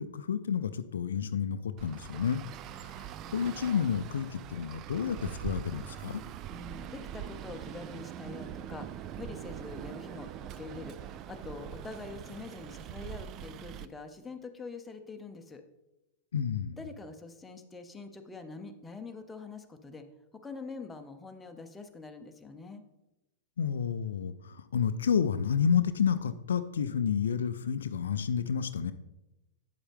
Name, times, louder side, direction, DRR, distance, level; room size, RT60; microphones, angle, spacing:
voice 1, 0.0-2.4 2.8-3.1 3.3-6.2 16.3-16.8 23.6-28.9, left 7 dB, 75° left, 12 dB, 0.4 m, -30 dB
Traffic noise roadway noise, 1.8-13.9, right 10 dB, 35° right, 0.4 m, -43 dB
voice 2, 6.5-10.3 10.6-11.0 11.3-15.6 16.7-20.1 20.3-22.8, left 4 dB, 10° left, 5 dB, 0.9 m, -44 dB
8.4 x 7.1 x 3.5 m, 0.95 s
hypercardioid pair, 105°, 0 cm